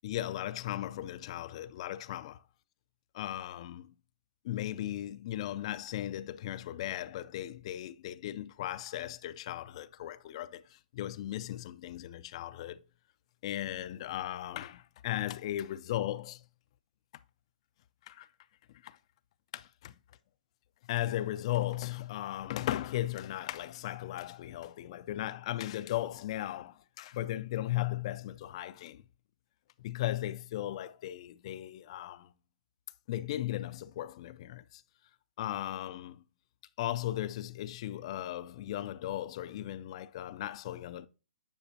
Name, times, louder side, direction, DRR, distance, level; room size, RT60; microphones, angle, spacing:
voice 1, 0.0-2.4 3.1-3.9 4.4-12.8 13.4-16.4 18.1-18.3 18.7-19.0 19.5-19.9 20.9-29.0 29.8-32.3 33.1-34.8 35.4-36.2 36.8-41.1, left 13 dB, 45° left, 0.4 m, -37 dB
9.1 x 4.9 x 2.7 m
hypercardioid pair, 135°, 4 cm